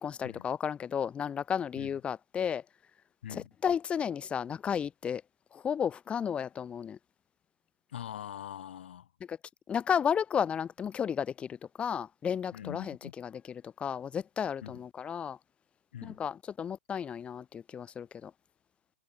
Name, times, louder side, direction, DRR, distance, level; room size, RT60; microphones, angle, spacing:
voice 1, 0.0-2.6 3.3-5.2 5.5-7.0 9.3-9.4 9.7-15.4 16.0-18.3, left 8 dB, 15° left, 1.8 m, -33 dB
voice 2, 7.9-9.1 12.5-13.1 14.6-14.8 15.9-16.2, left 10 dB, 60° left, 1.1 m, -43 dB
figure-of-eight pair, 115°, 7 cm